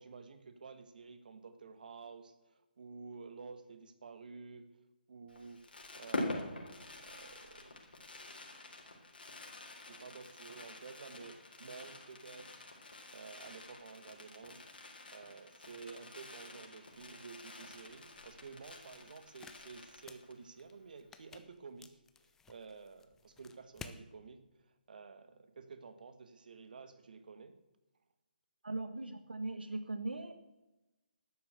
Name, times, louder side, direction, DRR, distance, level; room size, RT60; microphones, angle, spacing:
voice 1, 0.0-4.7 5.1-5.7 5.9-7.8 9.8-14.6 15.1-21.9 22.2-27.5, right 4 dB, 60° right, 10 dB, 1.5 m, -52 dB
Fireworks, 5.3-20.5 20.8-20.9 21.0-21.3, left 2 dB, 75° left, 3.8 m, -46 dB
sound 1, 17.4-24.0, left 5 dB, 10° left, 0.6 m, -56 dB
voice 2, 28.6-30.3, right 2 dB, 85° right, 9 dB, 1.2 m, -39 dB
12.0 x 7.6 x 8.0 m, 1.0 s
figure-of-eight pair, 145°, 5 cm